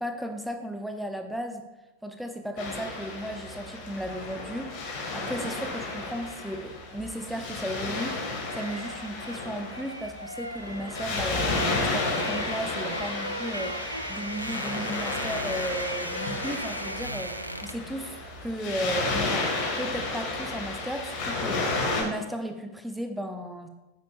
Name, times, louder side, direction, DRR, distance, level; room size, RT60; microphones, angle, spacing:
voice 1, 0.0-1.6 2.0-19.5 19.8-23.7, right 1 dB, ahead, 5 dB, 0.8 m, -35 dB
Waves surf, 2.6-22.0, left 3 dB, 40° left, 2.2 m, -32 dB
sound 1, 7.9-17.9 18.2-18.4, right 1 dB, 85° right, 0.4 m, -37 dB
8.8 x 8.6 x 2.6 m, 1.0 s
figure-of-eight pair, 90°, 0 cm